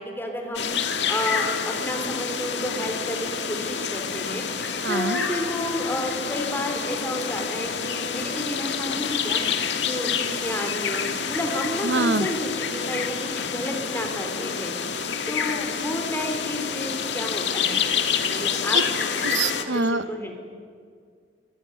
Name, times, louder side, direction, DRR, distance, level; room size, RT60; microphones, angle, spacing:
voice 1, 0.0-11.0 11.3-17.8 18.3-19.2 19.6-20.3, left 1 dB, 10° left, 3 dB, 3.9 m, -31 dB
sound 1, 0.5-19.6, left 6 dB, 70° left, 2.0 m, -28 dB
voice 2, 4.8-5.2 11.8-12.3 18.7-18.8 19.2-20.0, right 3 dB, 85° right, 13 dB, 1.0 m, -24 dB
25.0 x 20.5 x 9.9 m, 2.1 s
head